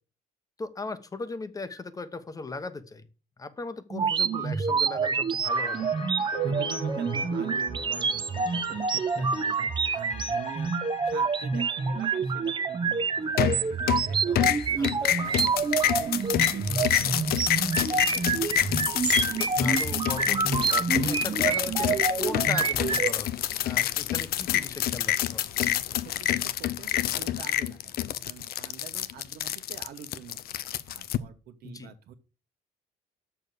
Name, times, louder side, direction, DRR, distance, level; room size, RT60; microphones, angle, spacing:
voice 1, 0.6-3.0 3.4-5.9 15.0-15.1 19.4-25.5 31.6-31.9, left 3 dB, 20° left, 12 dB, 1.0 m, -38 dB
sound 1, 3.9-23.1, right 5 dB, 30° right, 0.8 m, -27 dB
sound 2, 5.4-15.5 15.8-15.9, left 6 dB, 45° left, 1.6 m, -43 dB
voice 2, 6.4-10.7 11.0-13.4 13.7-15.5 15.8-17.9 26.0-32.1, right 8 dB, 70° right, 6 dB, 1.2 m, -45 dB
sound 3, 13.4-14.1 14.4-31.2, left 12 dB, 65° left, 0.6 m, -27 dB
7.0 x 6.1 x 6.7 m, 0.34 s
cardioid pair, 110°, 17 cm